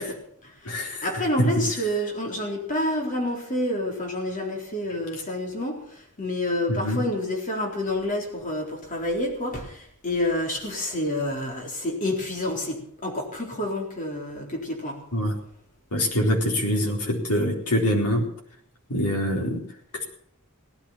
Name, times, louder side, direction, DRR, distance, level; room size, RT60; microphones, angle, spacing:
voice 1, 0.0-15.0, left 1 dB, 35° left, 1 dB, 4.0 m, -28 dB
voice 2, 0.7-1.0 1.4-1.5 6.7-7.0 15.1-15.3 15.9-18.3 18.9-19.6, equal, 90° left, 0 dB, 4.2 m, -24 dB
17.5 x 12.0 x 5.7 m, 0.64 s
head